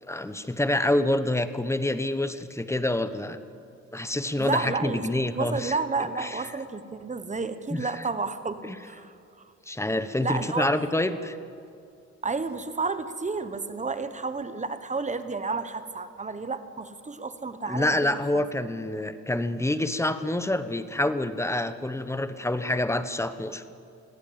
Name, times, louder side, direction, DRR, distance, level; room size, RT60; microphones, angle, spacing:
voice 1, 0.0-3.4 3.9-5.7 6.2-6.4 7.7-8.1 8.6-8.8 9.7-11.4 17.7-23.6, left 1 dB, 10° left, 11 dB, 1.1 m, -27 dB
voice 2, 4.4-5.0 5.4-9.1 10.2-10.7 12.2-18.4, right 4 dB, 25° right, 11 dB, 1.3 m, -31 dB
20.5 x 15.0 x 8.9 m, 2.5 s
cardioid pair, 90°, 30 cm